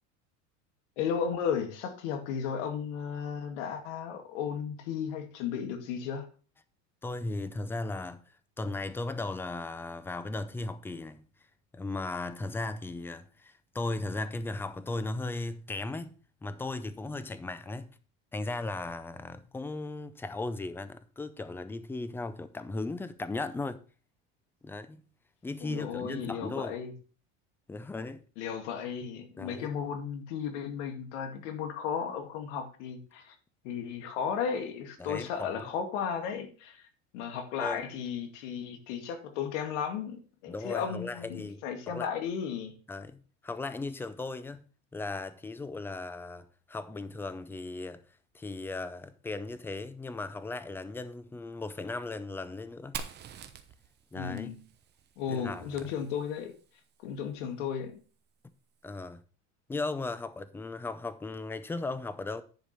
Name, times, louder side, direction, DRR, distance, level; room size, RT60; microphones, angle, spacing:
voice 1, 1.0-6.3 25.6-26.9 28.4-33.4 33.6-36.9 37.1-42.7 54.2-54.6 55.2-56.5 57.0-58.0, left 7 dB, 85° left, 2.2 m, -34 dB
voice 2, 7.0-11.2 11.7-17.9 18.3-23.8 24.6-25.0 25.4-26.8 27.7-28.2 29.4-29.7 35.0-35.7 37.6-37.8 40.5-41.6 41.9-42.1 42.9-44.6 44.9-48.0 48.3-53.0 54.1-54.5 55.3-55.7 58.8-59.2 59.7-62.4, left 2 dB, 5° left, 0.4 m, -37 dB
Fire, 52.9-56.6, right 7 dB, 30° right, 1.0 m, -45 dB
10.5 x 4.9 x 5.5 m
cardioid pair, 155°, 35 cm